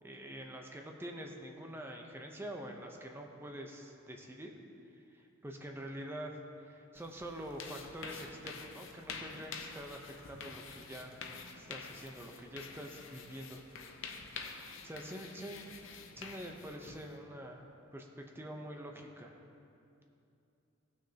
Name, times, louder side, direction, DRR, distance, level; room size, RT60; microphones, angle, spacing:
voice 1, 0.0-4.5 5.1-11.2 11.6-13.6 14.3-15.7 16.2-18.1 18.3-19.3, equal, 10° right, 2 dB, 0.7 m, -46 dB
sound 1, 6.9-17.2, left 5 dB, 70° left, 0.7 m, -48 dB
16.5 x 6.3 x 2.8 m, 2.6 s
head